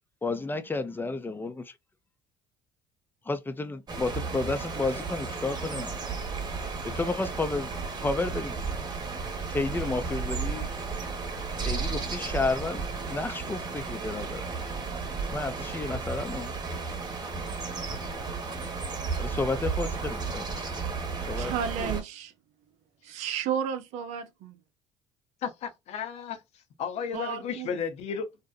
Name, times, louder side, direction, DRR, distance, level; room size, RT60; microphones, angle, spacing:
voice 1, 0.2-1.7 3.3-6.0 7.0-7.7 8.0-8.8 9.5-10.7 11.7-14.6 15.3-16.5 19.2-20.5 21.3-21.5, left 3 dB, 15° left, 0.5 m, -31 dB
sound 1, 3.9-22.0, right 4 dB, 35° right, 1.0 m, -33 dB
voice 2, 21.4-22.3 23.0-24.6 27.1-27.8, right 8 dB, 70° right, 0.5 m, -33 dB
voice 3, 25.4-26.4 26.8-28.3, left 6 dB, 60° left, 0.6 m, -33 dB
2.6 x 2.1 x 2.3 m
hypercardioid pair, 70°, 12 cm